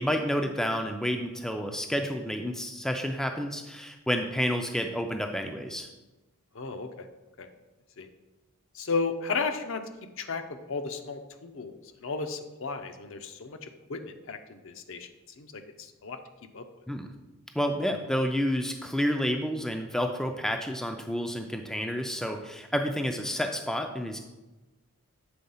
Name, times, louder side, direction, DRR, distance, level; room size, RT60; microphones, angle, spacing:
voice 1, 0.0-5.9 16.9-17.1 17.6-24.2, equal, ahead, 4 dB, 0.4 m, -30 dB
voice 2, 6.6-6.9 7.4-7.5 8.0-8.1 8.8-9.8 10.2-10.4 10.7-11.7 12.0-13.6 13.9-15.1 15.4-15.5 16.0-16.2 16.5-16.6, left 4 dB, 60° left, 7 dB, 0.6 m, -33 dB
7.8 x 3.7 x 5.5 m, 1.1 s
head